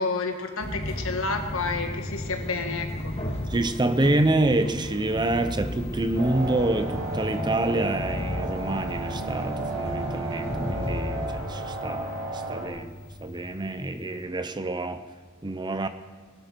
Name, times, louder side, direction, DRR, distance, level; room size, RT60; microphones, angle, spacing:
voice 1, 0.0-3.1, left 3 dB, 80° left, 5 dB, 1.7 m, -30 dB
sound 1, 0.6-14.2, left 1 dB, 30° left, 1.8 m, -34 dB
voice 2, 3.5-15.0 15.4-15.9, right 2 dB, 20° right, 10 dB, 0.7 m, -27 dB
sound 2, 6.1-12.7, right 2 dB, 80° right, 2.6 m, -34 dB
20.5 x 12.0 x 4.5 m, 1.4 s
head